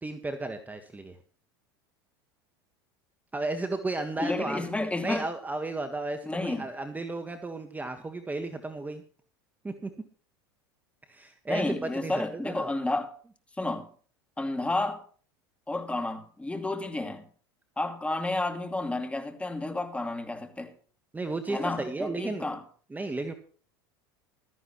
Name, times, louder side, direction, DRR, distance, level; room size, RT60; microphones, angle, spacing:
voice 1, 0.0-1.2 3.3-4.6 5.0-9.0 9.6-9.9 11.1-12.7 21.1-22.5 22.9-23.3, right 2 dB, 15° right, 1.5 m, -34 dB
voice 2, 4.2-5.3 6.2-6.7 11.5-13.1 13.6-13.9 14.4-15.0 15.7-17.2 17.8-20.7 21.5-22.6, left 2 dB, 10° left, 2.4 m, -31 dB
15.5 x 13.5 x 3.1 m
hypercardioid pair, 90°, 13 cm